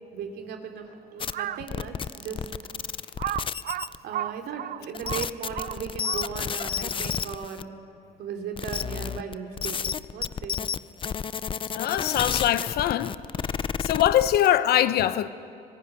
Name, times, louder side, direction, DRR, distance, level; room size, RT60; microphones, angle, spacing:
voice 1, 0.1-2.4 4.0-7.7 8.2-10.6, right 7 dB, 75° right, 3.0 m, -37 dB
sound 1, 1.2-1.3 1.7-4.0 4.9-7.6 8.6-14.5, left 7 dB, 30° left, 0.6 m, -31 dB
Crow, 1.2-1.7 2.3-2.4 3.2-6.6, right 12 dB, 55° right, 0.5 m, -33 dB
voice 2, 11.7-13.1 13.8-15.3, left 12 dB, 70° left, 1.0 m, -22 dB
26.0 x 18.0 x 9.1 m
cardioid pair, 110°, 17 cm